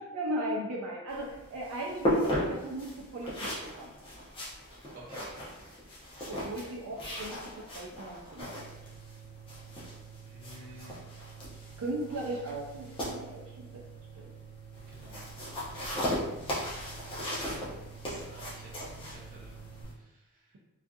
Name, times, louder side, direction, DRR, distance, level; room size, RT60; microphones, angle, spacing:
voice 1, 0.0-4.0 6.3-8.5 11.8-13.8 14.1-14.3, right 1 dB, 75° right, -3 dB, 0.4 m, -37 dB
sound 1, 1.1-19.9, equal, 25° left, 0.6 m, -37 dB
voice 2, 4.9-5.7 6.1-6.7 10.2-11.0 14.9-15.3 18.0-19.5 19.9-20.6, right 1 dB, 40° right, -5 dB, 0.7 m, -52 dB
sound 2, 8.4-19.8, right 9 dB, 65° left, 0.6 m, -50 dB
2.6 x 2.4 x 2.3 m, 0.96 s
head